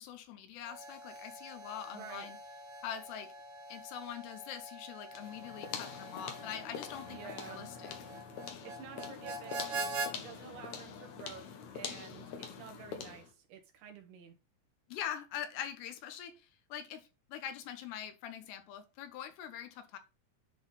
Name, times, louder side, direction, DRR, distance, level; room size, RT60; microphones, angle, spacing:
voice 1, 0.0-2.4 2.8-3.3 3.7-7.9 14.9-16.3 16.7-20.0, left 9 dB, 85° left, 3.2 m, -43 dB
Harmonica, 0.6-10.1, right 2 dB, 50° right, 2.7 m, -44 dB
voice 2, 1.9-2.3 7.1-7.7 8.6-9.7 10.1-11.4 11.7-14.4, right 7 dB, 75° right, 3.4 m, -50 dB
sound 1, 5.1-13.3, left 7 dB, 60° left, 2.1 m, -45 dB
10.0 x 4.1 x 4.0 m
omnidirectional pair, 4.7 m